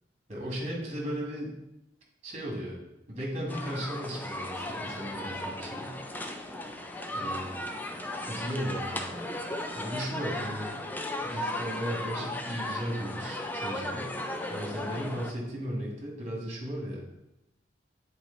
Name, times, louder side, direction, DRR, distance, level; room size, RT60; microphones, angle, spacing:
voice 1, 0.3-1.5 2.2-2.8 3.1-6.0 7.1-7.5 8.2-9.2 9.7-10.8 11.2-14.1 14.5-17.0, equal, 40° right, -2 dB, 1.9 m, -36 dB
sound 1, 3.5-15.3, left 1 dB, 10° left, 0.5 m, -36 dB
8.1 x 4.4 x 3.9 m, 0.88 s
head